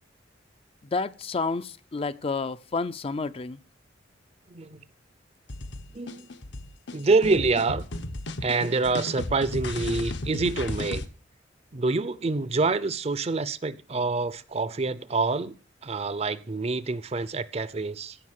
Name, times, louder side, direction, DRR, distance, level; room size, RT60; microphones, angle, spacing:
voice 1, 0.9-3.6, left 4 dB, 30° left, 0.5 m, -30 dB
voice 2, 4.5-4.8 5.9-6.3 6.9-7.9 8.4-11.0 11.7-15.6 15.8-18.2, right 3 dB, 35° right, 0.6 m, -26 dB
sound 1, 5.5-11.1, left 1 dB, 70° left, 1.1 m, -34 dB
16.0 x 5.6 x 7.5 m
head